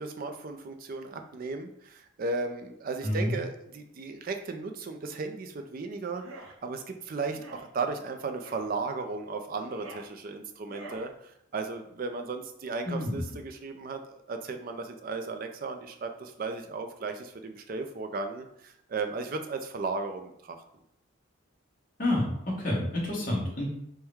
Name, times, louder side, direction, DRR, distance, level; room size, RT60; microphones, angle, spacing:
voice 1, 0.0-6.2 6.6-20.6, right 3 dB, 40° right, 6 dB, 0.4 m, -35 dB
voice 2, 3.0-3.3 12.8-13.2 22.0-23.7, left 1 dB, 40° left, -4 dB, 1.2 m, -29 dB
sound 1, 6.1-6.5 7.3-7.7 8.4-8.7 9.5-10.1 10.6-11.1, right 2 dB, 80° right, 0.7 m, -46 dB
4.5 x 2.1 x 3.4 m, 0.76 s
head